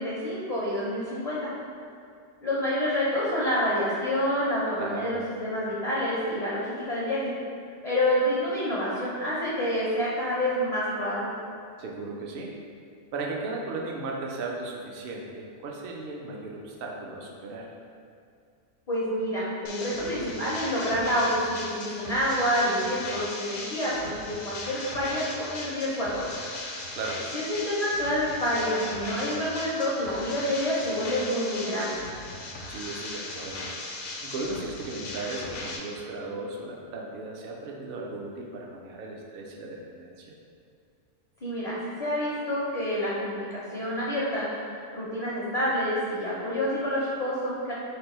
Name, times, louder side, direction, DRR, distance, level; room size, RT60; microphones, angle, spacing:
voice 1, 0.0-1.5 2.4-7.3 7.8-11.3 18.9-26.3 27.3-32.0 41.4-47.7, equal, 45° left, -7 dB, 0.5 m, -28 dB
voice 2, 4.8-5.1 11.8-12.5 13.1-17.7 27.0-27.4 32.7-33.7 34.2-40.3, right 2 dB, 60° right, -1 dB, 0.6 m, -36 dB
sound 1, 19.7-35.8, left 2 dB, 85° left, 0.9 m, -38 dB
3.3 x 2.5 x 4.1 m, 2.3 s
omnidirectional pair, 1.2 m